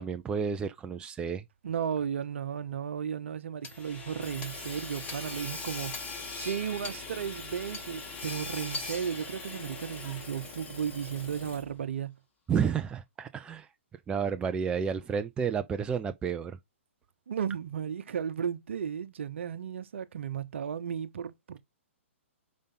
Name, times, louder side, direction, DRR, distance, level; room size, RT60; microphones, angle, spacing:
voice 1, 0.0-1.4 12.5-13.7 14.1-16.6, right 6 dB, 15° right, 0.4 m, -31 dB
voice 2, 1.6-12.1 17.3-21.6, right 8 dB, 60° right, 1.0 m, -34 dB
Hammer / Sawing, 3.6-11.8, left 3 dB, 20° left, 2.0 m, -40 dB
5.2 x 5.2 x 3.8 m
figure-of-eight pair, 125°, 7 cm